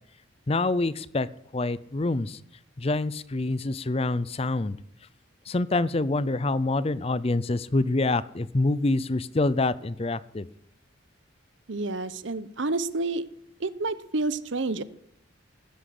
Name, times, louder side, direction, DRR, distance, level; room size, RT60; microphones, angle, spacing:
voice 1, 0.5-1.3 1.5-2.4 2.8-4.8 5.5-10.5, left 2 dB, 30° left, 18 dB, 0.5 m, -26 dB
voice 2, 11.7-13.2 13.6-14.8, right 3 dB, 65° right, 16 dB, 0.9 m, -29 dB
15.5 x 10.5 x 7.7 m, 0.70 s
head